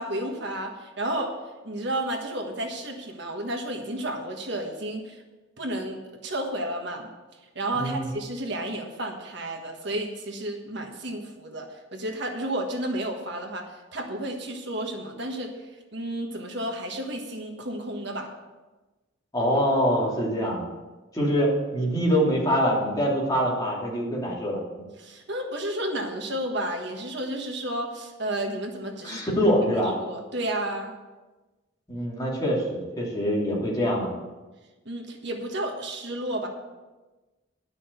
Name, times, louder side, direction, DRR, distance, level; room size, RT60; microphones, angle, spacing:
voice 1, 0.0-1.3 1.6-5.2 5.6-7.1 7.5-13.6 13.9-15.5 15.9-18.3 25.0-29.2 29.7-30.9 34.8-36.5, right 1 dB, 60° right, 2 dB, 1.5 m, -32 dB
voice 2, 7.7-8.1 19.3-20.6 21.1-24.6 29.0-29.9 31.9-34.1, equal, 20° left, -4 dB, 2.8 m, -24 dB
11.0 x 6.3 x 7.9 m, 1.2 s
head